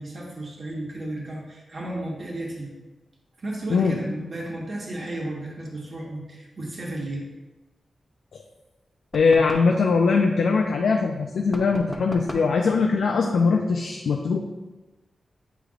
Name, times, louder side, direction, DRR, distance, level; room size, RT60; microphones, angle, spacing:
voice 1, 0.0-2.7 3.4-7.2, right 1 dB, 45° right, -2 dB, 1.2 m, -33 dB
voice 2, 9.1-14.4, left 4 dB, 80° left, 2 dB, 0.4 m, -21 dB
sound 1, 9.1-9.8 11.5-12.6, left 1 dB, 10° left, 0.5 m, -37 dB
7.8 x 5.0 x 2.4 m, 1.1 s
wide cardioid pair, 160°, 0 cm